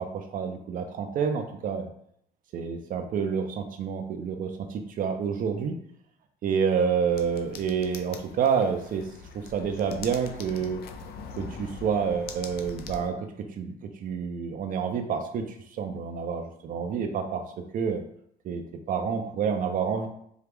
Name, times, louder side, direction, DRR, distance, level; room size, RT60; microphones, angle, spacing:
voice 1, 0.0-1.9 2.5-5.8 6.4-9.1 9.3-10.8 11.4-15.5 15.7-18.0 18.4-20.1, right 6 dB, 55° right, 5 dB, 0.5 m, -28 dB
sound 1, 7.1-13.1, left 5 dB, 70° left, 0.6 m, -42 dB
4.5 x 2.4 x 3.4 m, 0.70 s
cardioid pair, 110°, 17 cm